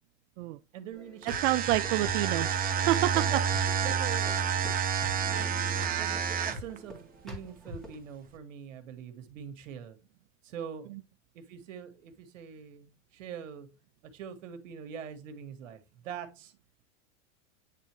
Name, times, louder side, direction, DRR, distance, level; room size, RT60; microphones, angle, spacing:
voice 1, 0.7-1.4 3.1-4.7 5.3-10.0 10.4-10.9 11.3-13.7 14.1-15.8 16.0-16.5, right 8 dB, 90° right, 1.5 m, -43 dB
sound 1, 0.9-7.9, equal, ahead, 2.1 m, -45 dB
sound 2, 1.2-6.8, right 7 dB, 25° right, 0.9 m, -29 dB
voice 2, 1.2-3.4 10.9-11.0, right 16 dB, 65° right, 0.5 m, -28 dB
9.2 x 3.7 x 3.1 m
supercardioid pair, 125°, 37 cm